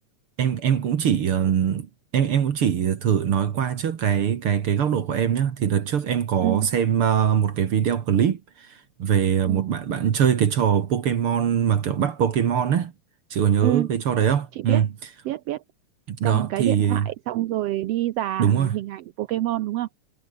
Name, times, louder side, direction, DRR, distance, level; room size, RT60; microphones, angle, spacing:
voice 1, 0.4-12.9 13.3-14.9 16.1-17.1 18.4-18.7, right 8 dB, 50° right, 2.0 m, -22 dB
voice 2, 13.6-13.9 14.5-14.8 15.2-15.6 16.2-19.9, right 15 dB, 80° right, 1.4 m, -27 dB
omnidirectional pair, 3.7 m